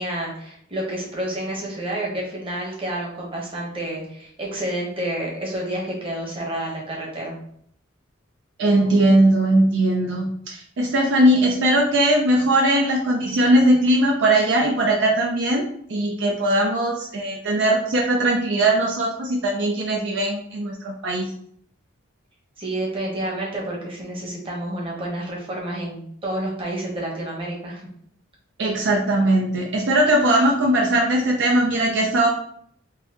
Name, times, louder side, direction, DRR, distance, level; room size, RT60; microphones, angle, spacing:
voice 1, 0.0-7.4 22.6-27.8, right 1 dB, 25° right, -3 dB, 1.1 m, -29 dB
voice 2, 8.6-21.3 28.6-32.3, right 1 dB, 60° right, 0 dB, 0.5 m, -19 dB
3.8 x 2.7 x 2.9 m, 0.66 s
head